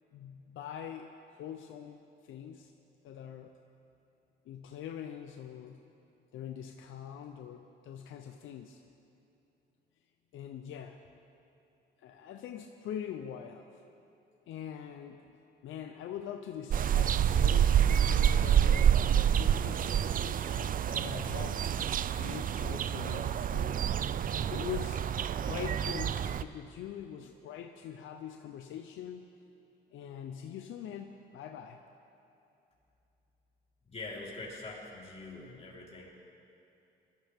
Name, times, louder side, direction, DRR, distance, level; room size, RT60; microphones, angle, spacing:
voice 1, 0.1-1.1 1.4-2.0 2.2-2.7 3.0-3.5 4.5-5.8 6.3-8.8 10.3-11.0 12.0-13.9 14.5-15.2 15.6-21.6 22.1-23.8 24.5-25.0 25.4-29.3 29.9-31.8, left 9 dB, 80° left, 5 dB, 0.8 m, -43 dB
sound 1, 16.7-26.4, right 9 dB, 45° right, 0.4 m, -28 dB
voice 2, 33.8-36.1, left 3 dB, 30° left, -5 dB, 4.2 m, -44 dB
20.5 x 13.5 x 3.6 m, 2.8 s
cardioid pair, 90°, 20 cm